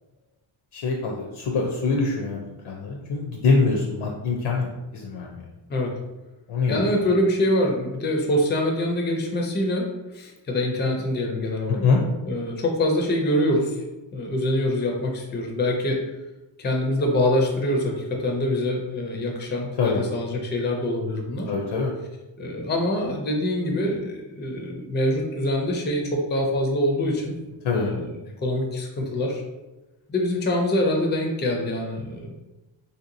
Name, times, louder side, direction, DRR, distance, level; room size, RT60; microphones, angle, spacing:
voice 1, 0.7-5.4 6.5-6.9 11.8-12.0 19.8-20.0 21.5-21.9 27.6-27.9, left 4 dB, 80° left, -1 dB, 0.6 m, -24 dB
voice 2, 6.7-11.9 12.2-13.8 14.1-16.0 16.6-21.5 22.4-27.3 27.7-29.4 30.1-32.3, left 1 dB, 25° left, 1 dB, 0.4 m, -25 dB
3.3 x 2.8 x 2.5 m, 1.0 s
wide cardioid pair, 175°, 49 cm